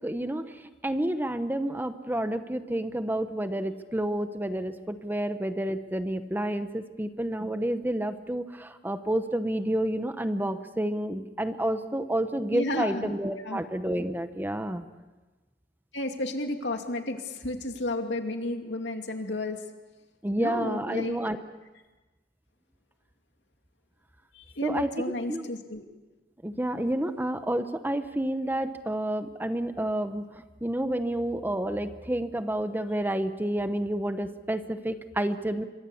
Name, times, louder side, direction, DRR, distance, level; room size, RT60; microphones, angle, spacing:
voice 1, 0.0-14.8 20.2-21.4 24.6-25.5 26.4-35.6, right 1 dB, 10° right, 9 dB, 0.9 m, -30 dB
voice 2, 12.5-13.2 13.4-13.6 15.9-19.6 20.4-21.2 24.3-25.8, left 2 dB, 75° left, 4 dB, 2.7 m, -32 dB
26.5 x 23.5 x 7.2 m, 1.2 s
head